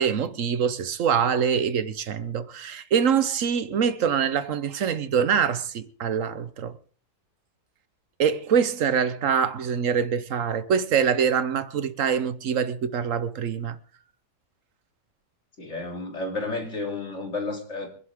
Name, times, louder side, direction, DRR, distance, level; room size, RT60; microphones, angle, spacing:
voice 1, 0.0-6.7 8.2-13.8, right 7 dB, 75° right, 1.2 m, -24 dB
voice 2, 15.6-17.9, left 3 dB, 60° left, 3.4 m, -31 dB
25.0 x 11.0 x 3.6 m
omnidirectional pair, 1.4 m